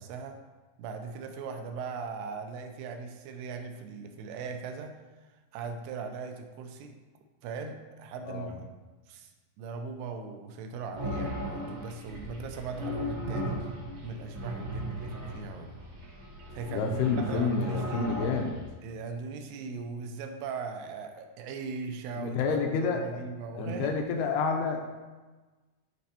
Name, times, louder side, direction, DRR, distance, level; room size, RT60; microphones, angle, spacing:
voice 1, 0.0-0.4 0.8-4.9 5.5-7.0 7.4-8.6 9.1-9.3 9.6-13.7 14.0-15.8 16.5-17.0 17.3-18.3 18.8-23.9, right 5 dB, 85° right, 5 dB, 2.6 m, -39 dB
sound 1, 10.9-18.7, equal, 65° right, 1.2 m, -37 dB
voice 2, 16.7-18.6 22.2-23.2 23.5-25.0, left 5 dB, 80° left, 3 dB, 2.5 m, -29 dB
11.5 x 4.2 x 2.9 m, 1.2 s
omnidirectional pair, 4.8 m